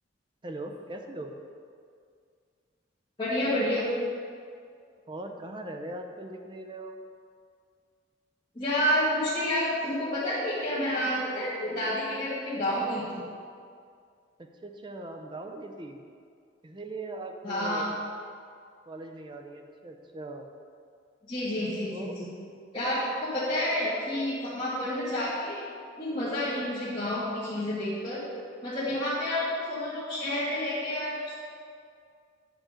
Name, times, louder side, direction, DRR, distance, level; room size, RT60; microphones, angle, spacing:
voice 1, 0.4-1.3 5.1-7.0 14.4-16.0 16.6-18.0 18.9-20.5 21.9-22.3, right 2 dB, 25° right, 4 dB, 0.6 m, -40 dB
voice 2, 3.2-3.9 8.5-13.2 17.4-17.9 21.2-22.3 22.7-25.6 26.0-28.2 28.6-31.4, left 1 dB, 25° left, -11 dB, 1.8 m, -29 dB
9.0 x 6.0 x 5.0 m, 2.2 s
head